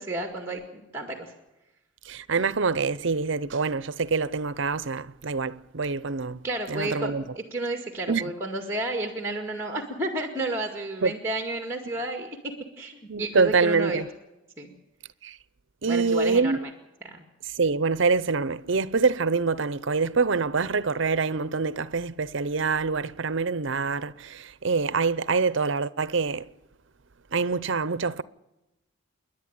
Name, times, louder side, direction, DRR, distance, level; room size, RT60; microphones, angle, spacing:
voice 1, 0.0-1.3 6.4-7.1 7.5-14.0 14.6-14.7 15.9-16.5 17.0-17.2, right 2 dB, 10° right, 2.0 m, -31 dB
voice 2, 2.1-6.4 6.7-7.2 8.1-8.2 11.0-11.1 13.1-14.1 15.2-15.4 15.8-16.6 17.6-26.5 27.3-28.2, right 4 dB, 65° right, 0.7 m, -25 dB
29.0 x 11.0 x 8.9 m
head